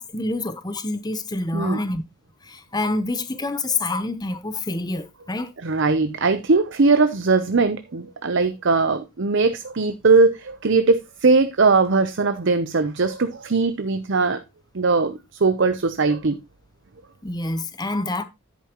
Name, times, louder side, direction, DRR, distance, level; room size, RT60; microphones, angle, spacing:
voice 1, 0.0-2.0 2.4-5.5 17.2-18.2, left 2 dB, 20° left, 0.8 m, -27 dB
voice 2, 5.6-14.4 14.7-16.4, right 4 dB, 55° right, 0.7 m, -20 dB
10.5 x 8.4 x 3.0 m
head